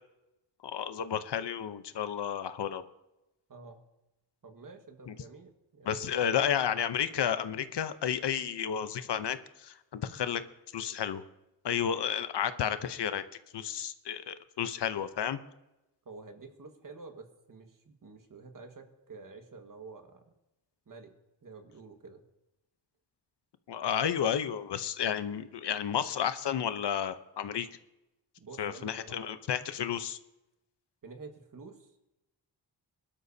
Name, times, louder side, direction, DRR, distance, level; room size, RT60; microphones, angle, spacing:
voice 1, 0.6-2.8 5.1-5.2 5.9-10.4 10.7-11.2 11.6-13.2 13.5-15.4 23.7-27.7 28.6-30.2, left 9 dB, 70° left, 11 dB, 0.9 m, -32 dB
voice 2, 3.5-3.8 4.4-6.2 16.1-20.2 20.9-21.1 21.4-22.2 28.4-29.4 31.0-32.0, right 4 dB, 45° right, 4 dB, 1.8 m, -49 dB
22.5 x 12.5 x 2.8 m, 0.93 s
wide cardioid pair, 100°, 43 cm